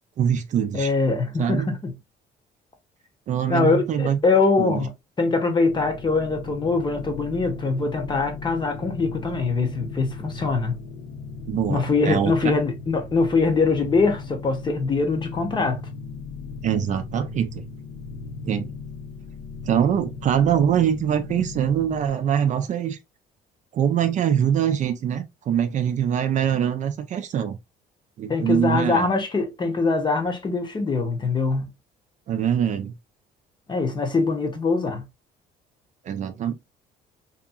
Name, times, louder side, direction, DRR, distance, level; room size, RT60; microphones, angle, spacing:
voice 1, 0.2-0.9 1.4-1.7 3.3-4.2 4.6-4.8 11.5-12.5 16.6-17.6 18.4-18.7 19.7-23.0 23.7-27.6 28.2-29.1 32.3-32.9 36.0-36.5, right 9 dB, 45° right, 0.4 m, -23 dB
voice 2, 0.7-1.9 3.5-4.9 5.2-10.8 11.7-15.8 28.3-31.7 33.7-35.0, left 4 dB, 25° left, 0.8 m, -23 dB
sound 1, 5.7-22.1, left 4 dB, 85° left, 0.6 m, -37 dB
2.8 x 2.5 x 2.3 m
cardioid pair, 110°, 17 cm